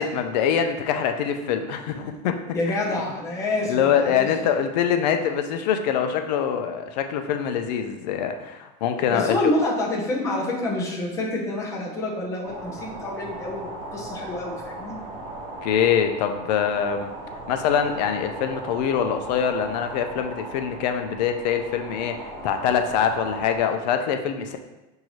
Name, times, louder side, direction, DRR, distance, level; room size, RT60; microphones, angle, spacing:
voice 1, 0.0-2.4 3.7-9.5 15.6-17.1 17.5-24.6, left 8 dB, 90° left, 7 dB, 0.5 m, -24 dB
voice 2, 2.5-4.3 9.1-15.0, left 2 dB, 15° left, -2 dB, 0.6 m, -27 dB
sound 1, 12.4-23.6, right 2 dB, 20° right, 1.0 m, -37 dB
6.2 x 2.7 x 3.0 m, 1.0 s
supercardioid pair, 175°, 21 cm